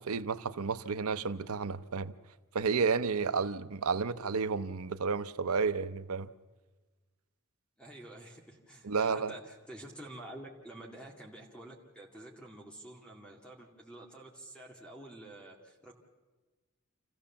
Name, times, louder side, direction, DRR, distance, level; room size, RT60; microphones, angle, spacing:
voice 1, 0.0-2.1 2.5-6.3 8.8-9.3, right 5 dB, 90° right, 0.7 m, -31 dB
voice 2, 7.8-15.9, right 1 dB, 5° left, 2.2 m, -49 dB
27.5 x 15.0 x 7.2 m
head